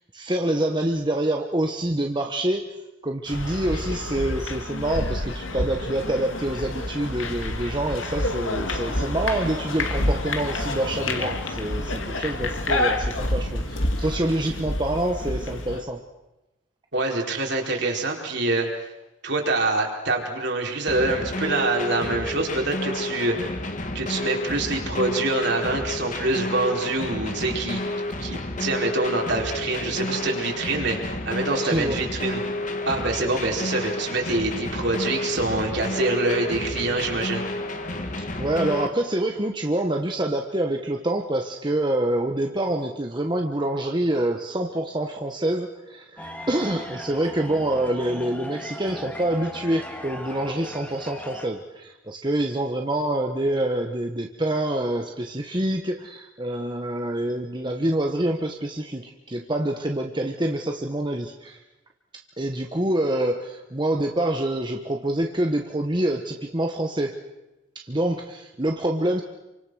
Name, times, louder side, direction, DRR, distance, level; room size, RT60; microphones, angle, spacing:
voice 1, 0.1-2.7 3.0-16.0 31.6-32.0 38.2-61.6 62.4-67.2 67.7-69.2, right 1 dB, 25° right, 3 dB, 1.3 m, -26 dB
sound 1, 3.3-15.8, left 1 dB, 80° left, 2.5 m, -28 dB
voice 2, 16.9-18.9 19.2-23.4 23.9-27.8 28.2-32.4 32.8-37.4, right 2 dB, 60° right, 0 dB, 4.7 m, -25 dB
sound 2, 20.9-38.9, left 1 dB, 40° left, 2.1 m, -30 dB
sound 3, 46.2-51.5, left 1 dB, 10° left, 2.3 m, -38 dB
28.0 x 25.0 x 6.4 m, 0.98 s
head